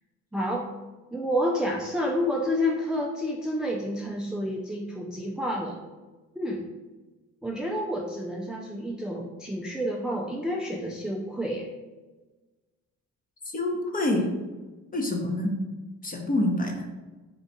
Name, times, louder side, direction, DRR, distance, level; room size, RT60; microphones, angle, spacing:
voice 1, 0.3-0.7 1.1-5.8 6.3-6.6 7.4-11.7, equal, 5° right, -1 dB, 0.4 m, -29 dB
voice 2, 13.4-14.3 14.9-15.5 16.0-16.9, left 1 dB, 30° left, 2 dB, 0.9 m, -26 dB
4.5 x 2.4 x 4.1 m, 1.2 s
cardioid pair, 90°, 30 cm